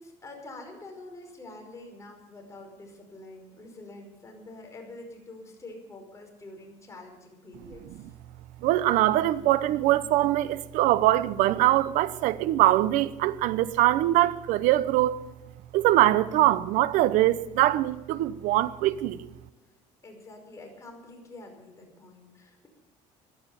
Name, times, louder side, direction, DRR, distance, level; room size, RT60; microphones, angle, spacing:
voice 1, 0.0-8.1 20.0-22.7, left 2 dB, 25° left, 5.2 m, -46 dB
voice 2, 8.6-15.2 15.7-19.3, right 15 dB, 75° right, 0.9 m, -23 dB
16.0 x 12.0 x 7.0 m
cardioid pair, 110°, 13 cm